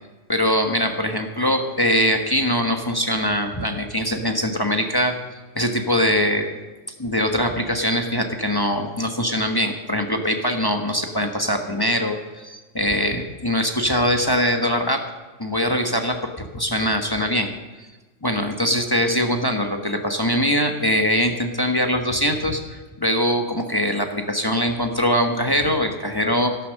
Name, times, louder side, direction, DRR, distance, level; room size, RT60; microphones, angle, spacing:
voice 1, 0.3-5.1 5.5-6.5 7.0-15.0 15.4-17.5 17.8-17.9 18.2-26.5, equal, 20° left, 4 dB, 1.2 m, -22 dB
13.0 x 11.5 x 6.5 m, 1.2 s
omnidirectional pair, 1.3 m